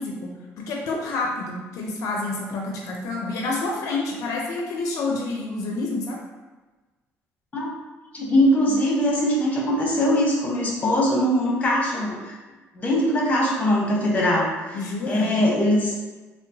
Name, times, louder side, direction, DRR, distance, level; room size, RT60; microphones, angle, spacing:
voice 1, 0.0-6.2 14.7-15.4, left 3 dB, 75° left, -1 dB, 0.5 m, -28 dB
voice 2, 8.1-12.4 12.7-14.8 15.0-15.9, equal, 25° left, -3 dB, 0.9 m, -21 dB
3.7 x 2.0 x 2.7 m, 1.2 s
cardioid pair, 105°, 6 cm